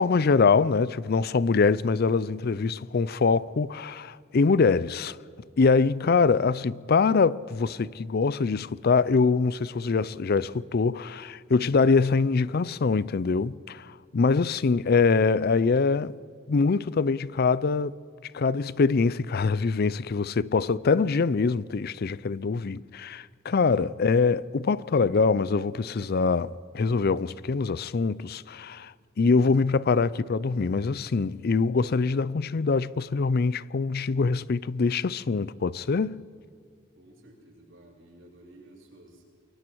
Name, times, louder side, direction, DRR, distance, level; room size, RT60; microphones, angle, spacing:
voice 1, 0.0-5.2 5.6-16.2 16.5-18.0 18.3-36.2, left 4 dB, 50° left, 0.5 m, -24 dB
voice 2, 36.9-39.2, right 1 dB, 80° right, 7.5 m, -53 dB
28.5 x 23.0 x 4.6 m
head